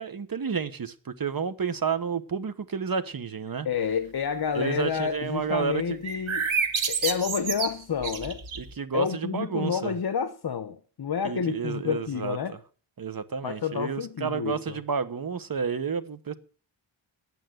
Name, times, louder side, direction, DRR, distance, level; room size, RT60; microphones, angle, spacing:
voice 1, 0.0-3.7 4.5-6.0 8.6-9.9 11.2-12.4 13.0-16.3, right 6 dB, 45° right, 1.2 m, -30 dB
voice 2, 3.6-6.5 6.9-8.4 8.9-12.6 13.4-14.8, left 7 dB, 55° left, 0.9 m, -29 dB
sound 1, 6.0-8.7, right 5 dB, 85° right, 1.8 m, -29 dB
11.0 x 9.1 x 7.8 m
wide cardioid pair, 165°, 46 cm